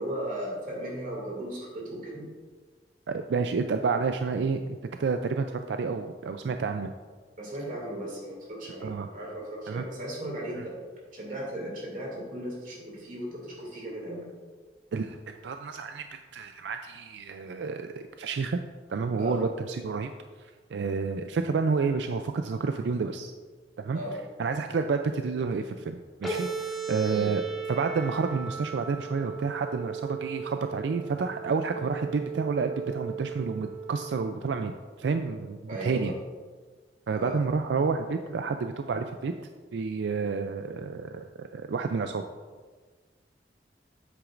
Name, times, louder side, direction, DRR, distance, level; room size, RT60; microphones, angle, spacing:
voice 1, 0.0-2.3 7.4-10.8 11.1-14.3 19.2-19.4 23.9-24.2 27.1-27.3 35.7-36.1 37.1-37.4, right 1 dB, 50° right, -3 dB, 2.5 m, -36 dB
voice 2, 3.1-6.9 8.8-9.1 9.7-9.8 10.6-10.7 14.9-16.0 16.3-17.9 18.2-18.6 18.9-20.1 20.4-23.3 23.8-24.0 24.4-27.4 27.7-36.1 37.1-39.3 39.7-42.2, right 4 dB, 85° right, 7 dB, 0.4 m, -30 dB
sound 1, 26.2-34.2, right 5 dB, ahead, 1.6 m, -36 dB
9.0 x 8.1 x 2.5 m, 1.4 s
head